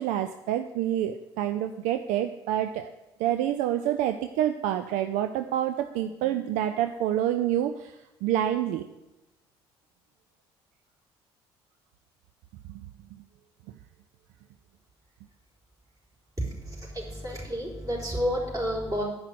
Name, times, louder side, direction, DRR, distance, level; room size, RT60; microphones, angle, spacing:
voice 1, 0.0-2.9 3.2-8.9 12.7-12.8, right 11 dB, 60° right, 8 dB, 0.5 m, -27 dB
voice 2, 16.4-19.0, equal, 25° right, -3 dB, 4.0 m, -30 dB
9.5 x 5.6 x 6.4 m, 1.0 s
figure-of-eight pair, 50°, 14 cm